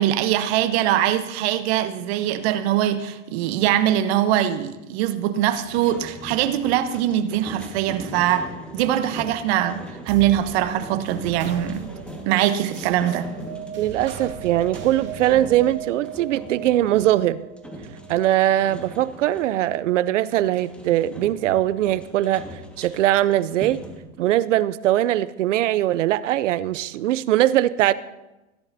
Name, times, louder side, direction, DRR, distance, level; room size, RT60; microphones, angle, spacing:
voice 1, 0.0-8.5 8.7-9.8 10.0-11.9 12.3-13.3, right 12 dB, 60° right, 11 dB, 1.0 m, -22 dB
sound 1, 5.5-19.6 20.3-24.0, equal, 5° left, 1.6 m, -41 dB
sound 2, 10.1-18.8, right 7 dB, 30° right, 1.9 m, -37 dB
voice 2, 13.8-17.4 18.1-22.4 22.8-23.8 24.2-27.9, right 13 dB, 80° right, 18 dB, 0.6 m, -21 dB
16.5 x 10.5 x 2.7 m, 1.0 s
hypercardioid pair, 110°, 36 cm